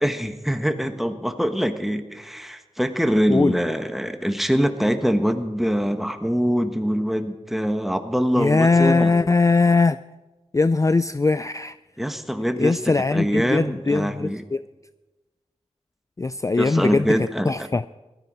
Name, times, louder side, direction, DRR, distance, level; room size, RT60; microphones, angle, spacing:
voice 1, 0.0-9.1 12.0-12.8 13.1-14.4 16.6-17.7, equal, ahead, 7 dB, 1.4 m, -24 dB
voice 2, 8.4-10.0 10.5-11.7 12.6-14.6 16.2-17.1 17.5-17.8, left 3 dB, 25° left, 14 dB, 0.4 m, -20 dB
17.0 x 13.5 x 4.9 m, 1.1 s
cardioid pair, 45°, 12 cm